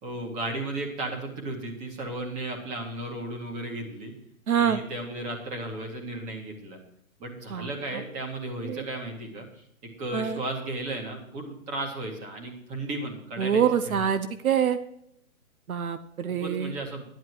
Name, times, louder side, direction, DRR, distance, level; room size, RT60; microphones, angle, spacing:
voice 1, 0.0-4.1 4.6-6.8 7.2-9.6 10.0-14.1 16.4-17.0, right 2 dB, 15° right, 2 dB, 2.1 m, -35 dB
voice 2, 4.5-4.8 7.5-7.7 8.6-8.8 10.1-10.4 13.4-14.8 15.7-16.7, right 8 dB, 75° right, 11 dB, 1.0 m, -25 dB
11.5 x 10.5 x 4.7 m, 0.73 s
hypercardioid pair, 155°, 43 cm